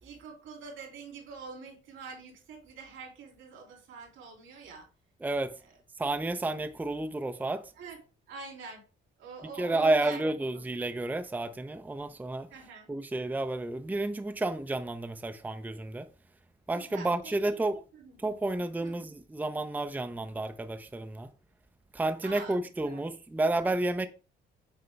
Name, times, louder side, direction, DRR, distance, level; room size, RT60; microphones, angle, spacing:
voice 1, 0.0-4.9 5.6-5.8 7.7-8.0 8.3-8.8 9.2-10.7 12.5-12.9 16.7-17.7 17.9-18.2 18.8-19.0 22.2-23.1, right 4 dB, 80° right, 2.9 m, -46 dB
voice 2, 5.2-5.5 6.0-7.7 9.6-12.5 12.9-16.1 16.7-17.8 18.2-21.3 21.9-24.1, right 2 dB, 10° right, 0.6 m, -31 dB
7.8 x 4.2 x 3.4 m
cardioid pair, 90°, 20 cm